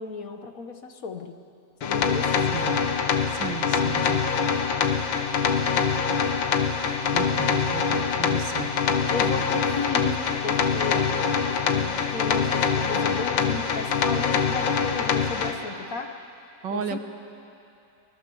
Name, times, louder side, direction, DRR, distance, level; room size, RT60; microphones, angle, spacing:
voice 1, 0.0-1.4 1.8-2.7 9.1-11.3 11.7-16.1 16.7-17.0, left 4 dB, 55° left, 6 dB, 1.4 m, -34 dB
sound 1, 1.8-15.5, left 6 dB, 90° left, 2.0 m, -24 dB
voice 2, 2.5-2.9 3.4-4.2 7.1-8.7 16.6-17.0, right 8 dB, 75° right, 7 dB, 1.9 m, -34 dB
25.5 x 20.5 x 7.1 m, 2.7 s
omnidirectional pair, 2.0 m